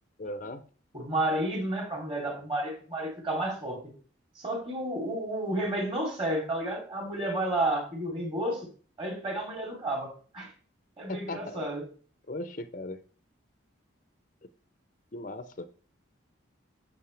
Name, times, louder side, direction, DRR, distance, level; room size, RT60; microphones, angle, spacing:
voice 1, 0.2-0.6 11.1-11.6 12.3-13.0 15.1-15.7, left 2 dB, 40° left, 0.6 m, -38 dB
voice 2, 0.9-3.9 4.3-8.7 9.0-10.5 11.0-11.9, right 1 dB, 30° right, 3.1 m, -31 dB
11.5 x 7.3 x 3.4 m
head